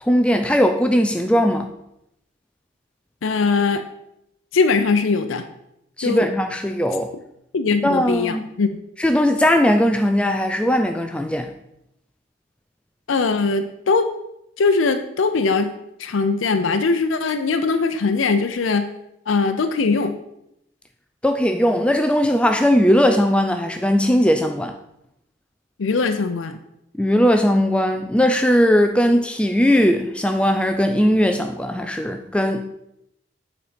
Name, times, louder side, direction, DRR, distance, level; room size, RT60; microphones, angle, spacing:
voice 1, 0.0-1.7 6.0-7.1 7.8-8.4 9.0-11.5 21.2-24.7 27.0-32.6, equal, 5° left, 6 dB, 0.3 m, -18 dB
voice 2, 3.2-3.8 4.5-5.4 6.0-6.3 7.5-8.7 13.1-14.1 14.6-15.7 16.0-18.9 19.3-20.2 25.8-26.6, left 4 dB, 85° left, 7 dB, 0.5 m, -20 dB
8.6 x 4.1 x 5.0 m, 0.81 s
head